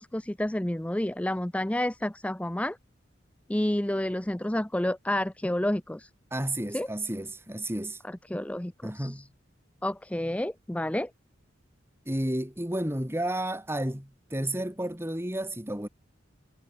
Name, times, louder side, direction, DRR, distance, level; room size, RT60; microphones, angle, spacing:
voice 1, 0.0-2.8 3.5-6.1 6.7-6.9 8.1-9.2 9.8-11.1, left 1 dB, 5° left, 0.5 m, -30 dB
voice 2, 6.3-8.0 8.8-9.3 12.1-15.9, right 1 dB, 15° right, 3.3 m, -32 dB
head